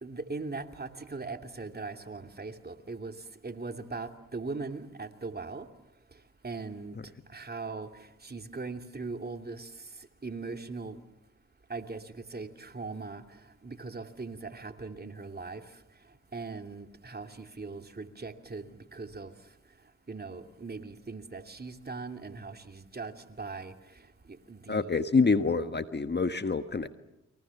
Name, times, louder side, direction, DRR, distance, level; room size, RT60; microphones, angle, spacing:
voice 1, 0.0-3.1 3.4-5.7 6.4-7.0 7.3-7.9 8.2-9.7 10.2-11.0 11.7-13.2 13.6-15.6 16.3-19.3 20.1-23.7 24.3-24.9, right 3 dB, 30° right, 2.7 m, -40 dB
voice 2, 24.7-26.9, left 4 dB, 35° left, 1.5 m, -26 dB
30.0 x 23.5 x 7.1 m
supercardioid pair, 50°, 31 cm